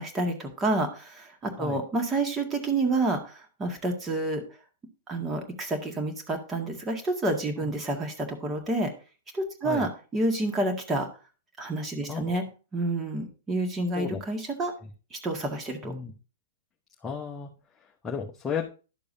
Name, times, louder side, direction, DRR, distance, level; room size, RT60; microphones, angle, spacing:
voice 1, 0.0-4.4 5.1-8.9 9.3-11.1 11.6-12.4 12.7-14.7 15.1-15.9, right 2 dB, 15° right, 3 dB, 1.9 m, -29 dB
voice 2, 17.0-17.5 18.0-18.6, left 6 dB, 15° left, -1 dB, 1.0 m, -33 dB
11.5 x 6.7 x 2.7 m, 0.35 s
figure-of-eight pair, 105°, 0 cm